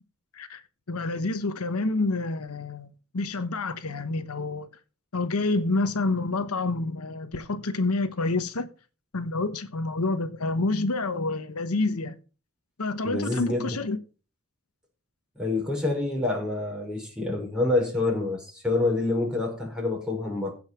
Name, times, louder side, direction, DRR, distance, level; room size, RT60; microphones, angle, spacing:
voice 1, 0.9-2.9 3.1-4.7 5.1-8.7 9.1-12.1 12.8-14.0, left 2 dB, 85° left, 1.1 m, -28 dB
voice 2, 13.0-13.8 15.4-20.5, left 2 dB, 5° right, 5.4 m, -27 dB
16.0 x 5.6 x 6.0 m
head